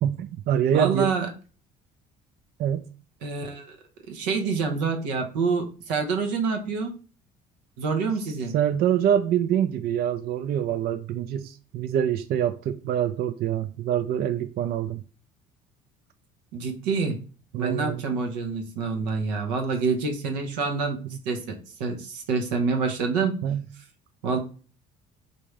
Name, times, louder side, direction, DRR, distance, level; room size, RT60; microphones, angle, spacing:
voice 1, 0.0-1.1 2.6-2.9 8.5-15.0 17.5-18.0 21.1-21.2 23.4-23.7, right 9 dB, 50° right, 0.4 m, -25 dB
voice 2, 0.7-1.3 3.2-3.8 4.1-6.9 7.8-8.5 16.5-17.2 17.6-23.4 24.2-24.4, right 4 dB, 85° right, 0.8 m, -27 dB
3.5 x 2.7 x 3.2 m
hypercardioid pair, 65°, 21 cm